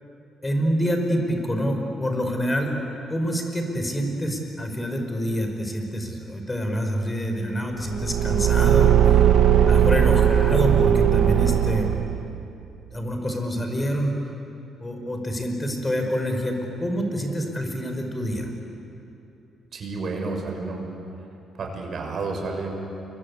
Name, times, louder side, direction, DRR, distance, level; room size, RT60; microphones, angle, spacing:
voice 1, 0.4-2.8 3.1-9.2 9.7-12.1 12.9-14.2 14.8-18.5, equal, 20° left, 4 dB, 5.4 m, -27 dB
Car / Engine, 7.9-12.4, right 9 dB, 75° right, 1.1 m, -18 dB
voice 2, 19.7-20.8 21.6-22.7, right 3 dB, 55° right, 2 dB, 6.6 m, -30 dB
29.0 x 23.0 x 8.5 m, 2.9 s
cardioid pair, 90°, 0 cm